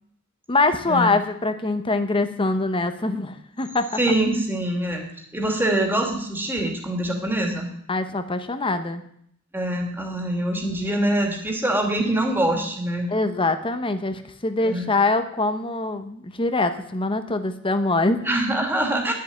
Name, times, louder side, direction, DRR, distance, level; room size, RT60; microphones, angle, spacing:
voice 1, 0.5-3.9 7.9-9.0 13.1-18.2, left 2 dB, 25° left, 9 dB, 1.0 m, -23 dB
voice 2, 4.0-5.1 5.3-7.7 9.5-13.1 14.6-14.9 18.2-19.1, right 1 dB, 10° right, 1 dB, 2.6 m, -24 dB
10.5 x 7.5 x 9.7 m, 0.69 s
head